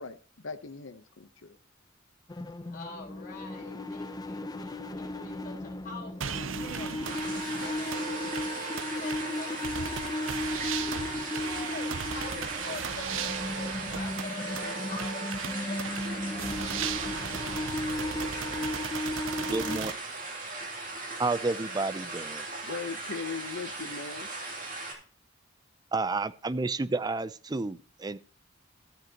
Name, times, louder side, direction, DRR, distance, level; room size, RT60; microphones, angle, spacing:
voice 1, 0.0-1.6 22.6-24.3, left 5 dB, 80° left, 0.8 m, -39 dB
sound 1, 2.3-19.8, left 1 dB, 20° left, 0.6 m, -36 dB
voice 2, 2.7-7.0 7.5-10.3 10.8-16.9, left 3 dB, 45° left, 4.4 m, -45 dB
sound 2, 6.2-19.9, right 7 dB, 85° right, 0.6 m, -37 dB
sound 3, 7.0-24.9, right 2 dB, 45° right, 2.9 m, -38 dB
voice 3, 19.4-19.9 21.2-22.5 25.9-28.2, right 3 dB, 20° right, 0.5 m, -30 dB
13.5 x 7.9 x 2.9 m
head